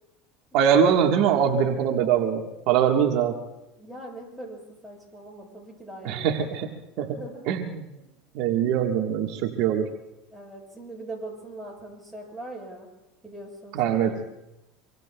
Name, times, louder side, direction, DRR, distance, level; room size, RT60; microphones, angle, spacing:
voice 1, 0.5-3.4 6.0-6.7 7.0-7.1 7.5-7.8 8.3-9.9 13.7-14.1, right 8 dB, 65° right, 3 dB, 1.3 m, -22 dB
voice 2, 3.8-7.5 8.0-8.1 10.3-12.9 13.2-14.1, right 1 dB, ahead, -3 dB, 7.2 m, -41 dB
25.5 x 24.5 x 2.2 m, 0.94 s
supercardioid pair, 115°, 0 cm